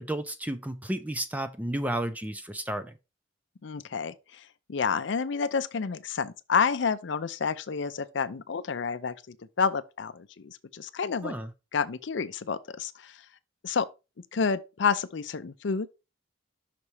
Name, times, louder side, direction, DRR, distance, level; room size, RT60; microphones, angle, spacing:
voice 1, 0.0-2.9 11.2-11.5, right 1 dB, 10° right, 0.5 m, -32 dB
voice 2, 3.6-11.3 11.7-13.2 13.6-13.9 14.3-15.9, left 5 dB, 70° left, 0.5 m, -29 dB
5.9 x 4.1 x 4.8 m
head